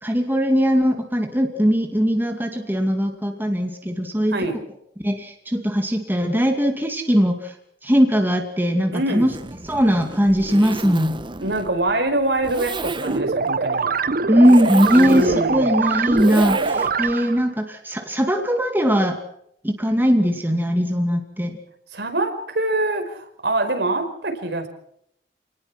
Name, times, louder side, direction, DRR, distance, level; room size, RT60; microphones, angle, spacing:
voice 1, 0.0-4.5 5.0-7.5 7.8-9.3 9.6-11.2 14.3-19.2 19.6-21.6, equal, 10° right, 4 dB, 2.4 m, -20 dB
voice 2, 8.9-9.3 11.4-13.9 14.9-15.8 21.9-24.7, right 2 dB, 70° right, 5 dB, 5.1 m, -24 dB
Zipper (clothing), 9.2-17.1, right 2 dB, 30° right, 1.3 m, -33 dB
sound 1, 13.1-17.5, right 4 dB, 55° right, 0.9 m, -23 dB
28.0 x 20.0 x 6.0 m, 0.70 s
head